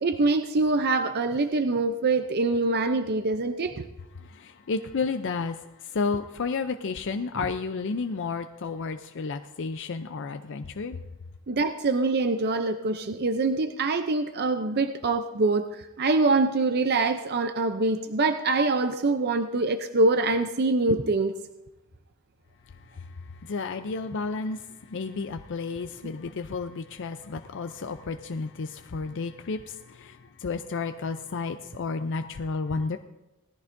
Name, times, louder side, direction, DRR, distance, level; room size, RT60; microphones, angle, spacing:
voice 1, 0.0-3.9 11.5-21.3, right 3 dB, 45° right, 0.6 m, -24 dB
voice 2, 4.2-11.0 22.7-33.0, left 4 dB, 55° left, 0.5 m, -32 dB
19.0 x 14.0 x 2.6 m
head